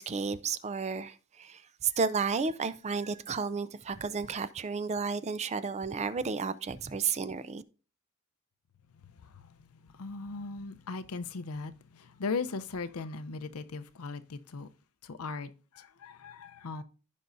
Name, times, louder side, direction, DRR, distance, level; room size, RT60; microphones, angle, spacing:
voice 1, 0.0-7.6, right 5 dB, 30° right, 0.4 m, -32 dB
voice 2, 9.0-14.7 15.0-16.8, left 4 dB, 90° left, 0.6 m, -39 dB
15.0 x 5.4 x 2.6 m
head